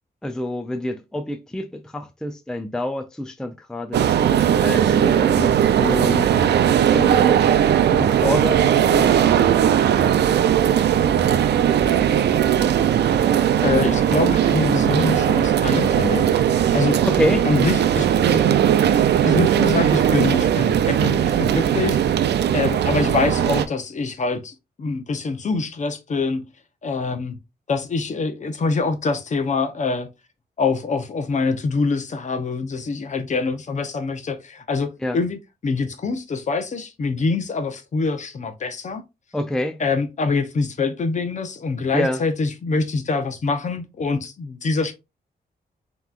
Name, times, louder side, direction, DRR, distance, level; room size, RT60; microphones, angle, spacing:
voice 1, 0.2-6.3 6.7-7.4 7.9-9.6 17.0-17.5 35.0-35.2 39.3-39.8 41.9-42.2, left 1 dB, 5° left, 0.4 m, -27 dB
sound 1, 3.9-23.6, right 9 dB, 85° right, 0.5 m, -18 dB
voice 2, 13.6-17.0 17.5-18.4 19.2-22.0 22.5-26.5 26.8-27.4 27.7-30.1 30.6-39.0 39.8-44.9, left 4 dB, 45° left, 0.8 m, -25 dB
5.7 x 3.0 x 2.4 m
wide cardioid pair, 125°, 17 cm